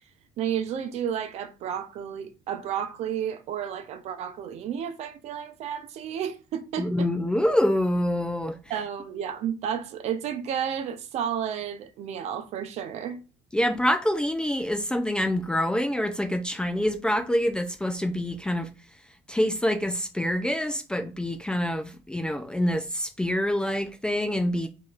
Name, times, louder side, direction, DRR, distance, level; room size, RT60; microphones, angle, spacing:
voice 1, 0.4-7.1 8.7-13.2, right 9 dB, 55° right, 0.7 m, -32 dB
voice 2, 6.8-8.6 13.5-18.7 19.3-24.7, left 1 dB, 5° left, 0.4 m, -26 dB
5.0 x 2.8 x 2.4 m
cardioid pair, 145°, 13 cm